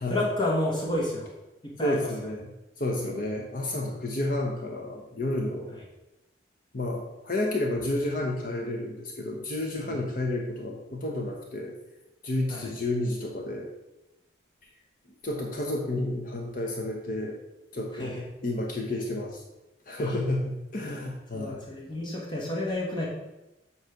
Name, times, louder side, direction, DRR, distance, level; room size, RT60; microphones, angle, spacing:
voice 1, 0.1-1.3 1.6-2.1 3.0-3.1 9.9-10.0 12.5-12.7 17.9-18.2 20.0-20.1 21.3-23.1, left 1 dB, 25° left, -3 dB, 1.2 m, -30 dB
voice 2, 1.8-2.5 2.8-5.7 6.7-11.8 12.2-13.7 15.2-17.4 17.7-19.4 19.9-21.6, left 1 dB, 45° left, 0 dB, 0.9 m, -31 dB
8.1 x 3.2 x 5.8 m, 0.97 s
head